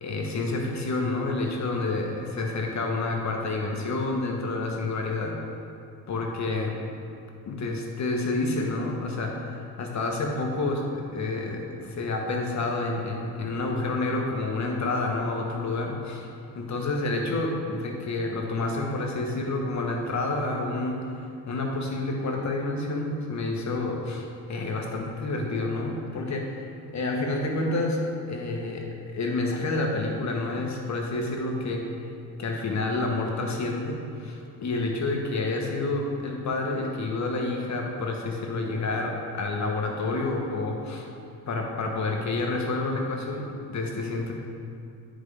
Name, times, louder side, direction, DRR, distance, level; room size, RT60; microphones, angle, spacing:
voice 1, 0.0-5.3 6.1-6.8 7.5-16.3 16.5-21.0 21.5-26.5 26.9-28.0 28.3-31.9 32.4-41.0 41.5-44.3, left 2 dB, 45° left, 1 dB, 1.3 m, -29 dB
9.5 x 5.0 x 3.4 m, 2.5 s
supercardioid pair, 70°, 40 cm